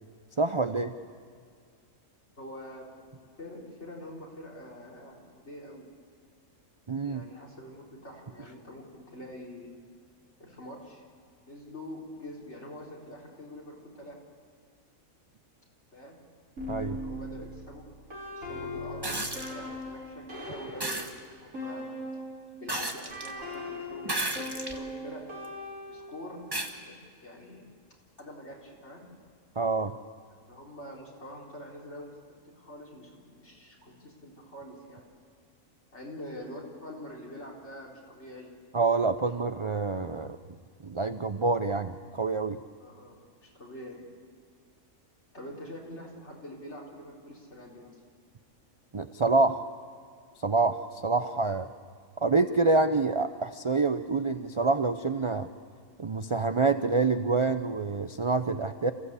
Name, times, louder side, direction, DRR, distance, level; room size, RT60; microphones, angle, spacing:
voice 1, 0.4-0.9 6.9-7.2 16.7-17.0 29.6-29.9 38.7-40.4 40.8-42.6 48.9-49.6 50.4-51.7 52.2-55.5 56.0-58.9, right 3 dB, 45° right, 9 dB, 0.4 m, -27 dB
voice 2, 2.4-3.1 3.4-5.9 7.0-9.7 10.4-11.0 11.4-14.2 15.9-16.2 16.8-17.8 18.4-21.9 22.5-25.2 25.9-27.0 27.2-27.6 28.2-29.0 30.3-32.1 32.5-35.0 35.9-38.6 42.8-44.0 45.3-47.9, left 1 dB, 50° left, -3 dB, 4.4 m, -45 dB
sound 1, 16.6-22.5 23.1-26.3, left 1 dB, 70° right, 5.7 m, -39 dB
sound 2, 19.0-19.5 20.8-21.1 22.7-23.3 24.0-24.8 25.4-25.5 26.5-26.7 28.2-28.3, right 2 dB, 15° right, 1.4 m, -33 dB
27.5 x 15.5 x 8.2 m, 2.1 s
omnidirectional pair, 1.4 m